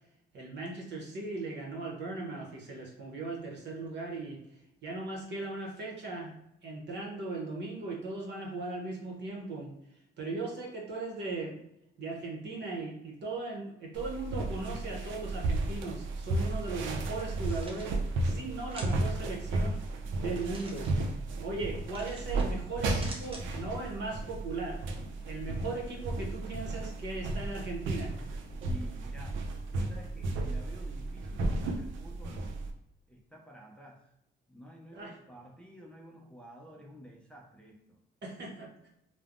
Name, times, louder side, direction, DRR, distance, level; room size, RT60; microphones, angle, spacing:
voice 1, 0.3-4.4 4.8-6.3 6.6-9.7 10.2-11.6 12.0-17.9 18.2-19.8 20.2-20.9 21.4-24.8 25.2-28.1 34.9-35.1 38.2-38.9, right 3 dB, 60° right, -1 dB, 0.9 m, -38 dB
sound 1, 13.9-32.7, right 2 dB, 80° right, 0.4 m, -34 dB
sound 2, 17.2-17.9 18.7-19.1 20.3-20.9 21.9-22.5 22.8-23.4, right 2 dB, 25° right, 0.7 m, -47 dB
voice 2, 28.6-32.6 33.1-34.1 34.5-38.0, equal, 5° left, -2 dB, 0.4 m, -51 dB
3.2 x 2.0 x 2.5 m, 0.82 s
cardioid pair, 90°, 20 cm